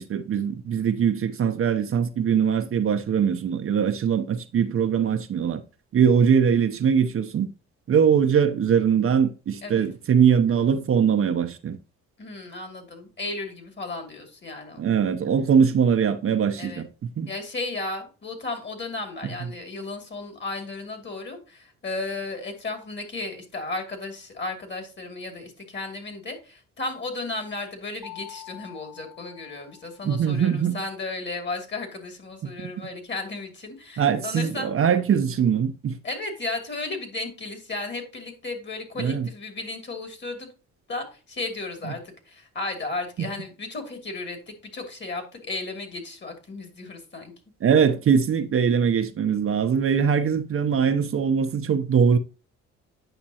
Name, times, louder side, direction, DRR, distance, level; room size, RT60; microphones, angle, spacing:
voice 1, 0.0-5.6 5.9-7.5 7.9-11.8 14.8-16.9 17.2-17.3 30.0-30.8 32.4-32.7 34.0-36.0 39.0-39.3 43.2-43.3 47.6-52.2, right 7 dB, 45° right, 0.7 m, -22 dB
voice 2, 12.2-14.8 16.6-16.8 17.3-34.7 36.0-40.5 40.9-47.3, left 3 dB, 35° left, 2.5 m, -34 dB
Mallet percussion, 28.0-30.5, left 13 dB, 10° right, 0.9 m, -46 dB
8.9 x 5.8 x 2.8 m
cardioid pair, 90°, 30 cm